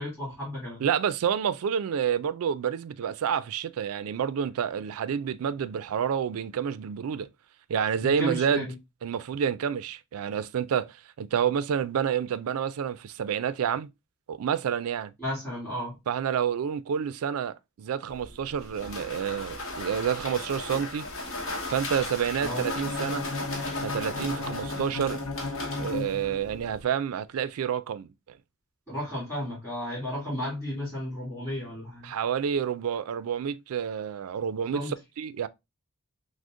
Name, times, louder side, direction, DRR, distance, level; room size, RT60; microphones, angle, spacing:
voice 1, 0.0-0.8 8.0-8.7 15.2-16.0 22.4-22.7 28.9-32.1 34.7-34.9, equal, 10° left, 2.5 m, -33 dB
voice 2, 0.8-7.3 7.7-8.7 9.0-13.9 14.3-15.1 16.1-21.1 21.7-23.2 23.8-25.2 25.8-28.1 32.0-35.5, right 8 dB, 75° right, 0.3 m, -29 dB
sound 1, 18.1-26.8, left 2 dB, 60° left, 0.9 m, -37 dB
Bowed string instrument, 22.6-26.7, left 3 dB, 80° left, 0.7 m, -35 dB
6.1 x 2.1 x 2.4 m
head